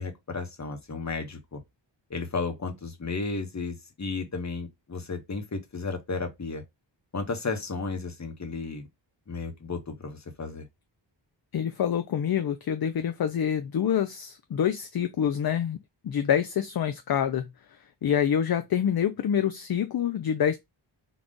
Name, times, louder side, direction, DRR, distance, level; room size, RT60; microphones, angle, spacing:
voice 1, 0.0-1.6 2.1-6.6 7.1-8.9 9.3-10.6, left 4 dB, 35° left, 1.0 m, -33 dB
voice 2, 11.5-15.8 16.0-17.5 18.0-20.6, left 9 dB, 50° left, 0.5 m, -26 dB
3.8 x 2.3 x 3.7 m
wide cardioid pair, 80°, 47 cm